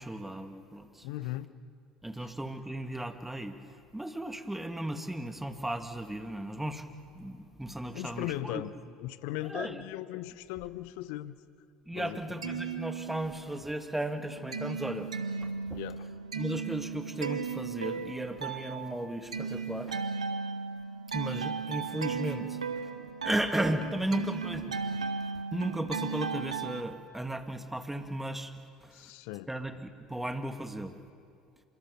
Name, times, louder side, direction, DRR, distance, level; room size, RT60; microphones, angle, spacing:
voice 1, 0.0-1.1 2.0-3.6 3.9-6.8 7.1-8.6 9.5-9.8 11.9-15.1 15.4-15.8 16.3-20.0 21.1-22.6 23.2-25.0 25.5-28.5 28.8-28.9 29.5-31.0, right 1 dB, 5° right, 7 dB, 1.9 m, -35 dB
voice 2, 1.0-1.5 2.2-2.3 7.9-8.7 9.0-11.3 11.9-12.6 15.7-16.1 28.9-29.5, left 16 dB, 60° left, 16 dB, 0.9 m, -38 dB
sound 1, 12.3-13.6 14.0-26.8, right 5 dB, 85° right, 1.1 m, -36 dB
27.0 x 24.5 x 7.0 m, 2.3 s
figure-of-eight pair, 65°, 4 cm